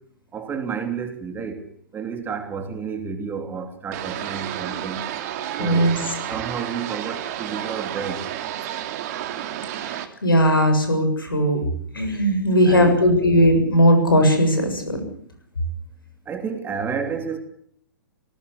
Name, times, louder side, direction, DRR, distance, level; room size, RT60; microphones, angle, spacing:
voice 1, 0.3-1.6 1.9-5.1 5.6-6.0 6.3-8.3 12.6-13.0 16.3-17.4, right 6 dB, 20° right, 6 dB, 3.1 m, -30 dB
sound 1, 3.9-10.1, right 11 dB, 45° right, 2.8 m, -31 dB
voice 2, 5.6-6.0 9.8-11.6 11.9-15.0, equal, 90° left, 6 dB, 7.3 m, -18 dB
20.5 x 18.5 x 8.5 m, 0.67 s
hypercardioid pair, 115°, 11 cm